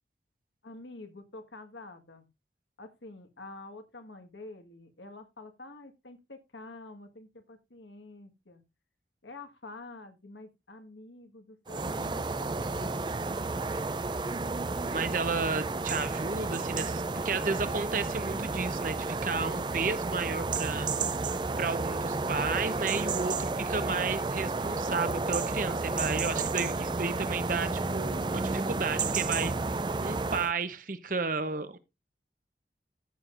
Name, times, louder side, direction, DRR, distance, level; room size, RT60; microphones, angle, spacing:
voice 1, 0.6-2.3 2.8-8.6 9.2-13.3, left 2 dB, 85° left, 1.6 m, -48 dB
sound 1, 11.7-30.5, right 3 dB, 25° right, 0.4 m, -31 dB
voice 2, 14.9-21.3 21.6-29.5 30.0-31.8, right 4 dB, 50° right, 0.9 m, -33 dB
13.5 x 7.6 x 2.6 m
head